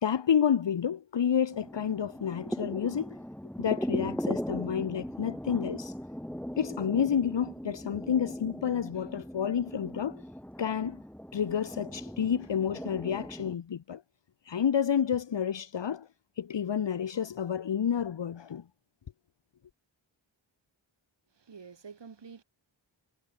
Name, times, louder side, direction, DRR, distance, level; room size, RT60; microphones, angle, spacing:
voice 1, 0.0-3.2 3.6-5.9 6.6-10.2 10.6-11.0 11.3-14.0 14.4-16.1 16.4-18.6, left 8 dB, 65° left, 1.1 m, -29 dB
sound 1, 1.5-13.6, equal, 5° left, 2.5 m, -38 dB
voice 2, 21.3-22.4, right 5 dB, 65° right, 2.8 m, -48 dB
wide cardioid pair, 90°, 46 cm